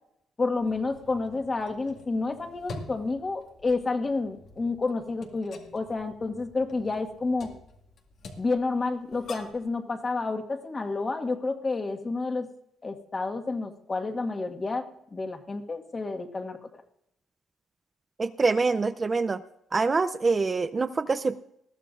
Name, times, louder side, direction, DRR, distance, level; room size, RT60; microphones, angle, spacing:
voice 1, 0.4-7.5 8.4-12.5 12.8-16.8, left 3 dB, 30° left, 5 dB, 1.7 m, -30 dB
sound 1, 0.6-9.7, left 2 dB, 65° left, 2.0 m, -47 dB
voice 2, 18.2-19.4 19.7-21.4, right 4 dB, 30° right, 11 dB, 0.5 m, -25 dB
20.5 x 14.0 x 2.6 m, 0.77 s
cardioid pair, 95°, 0 cm